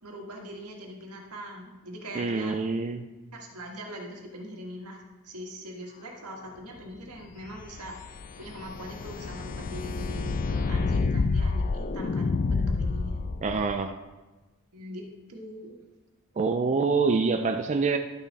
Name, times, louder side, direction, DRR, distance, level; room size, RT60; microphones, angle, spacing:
voice 1, 0.0-2.6 3.3-8.1 8.4-13.1 14.7-15.0 15.3-15.7, equal, 85° right, 1.7 m, -41 dB
voice 2, 2.1-3.1 13.4-14.0 16.4-18.0, right 4 dB, 30° right, 0.4 m, -26 dB
sound 1, 7.4-13.7, left 4 dB, 35° left, 0.3 m, -29 dB
11.5 x 5.7 x 4.1 m
head